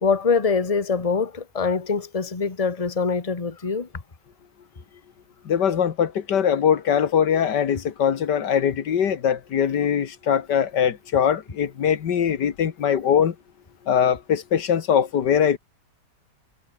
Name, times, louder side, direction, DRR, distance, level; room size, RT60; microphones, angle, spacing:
voice 1, 0.0-3.9, left 5 dB, 20° left, 1.6 m, -24 dB
voice 2, 5.5-13.3 13.9-15.6, left 8 dB, 75° left, 2.0 m, -21 dB
omnidirectional pair, 1.9 m